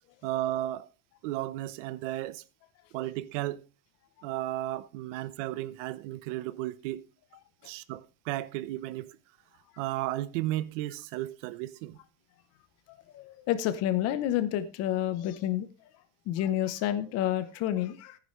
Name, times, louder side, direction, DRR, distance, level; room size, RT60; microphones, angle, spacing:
voice 1, 0.2-0.9 1.2-2.4 2.9-3.6 4.2-7.1 7.6-9.2 9.8-12.0, right 15 dB, 70° right, 0.9 m, -34 dB
voice 2, 13.1-15.7 16.3-18.2, left 12 dB, 40° left, 0.9 m, -29 dB
15.0 x 9.9 x 3.2 m
cardioid pair, 175°, 39 cm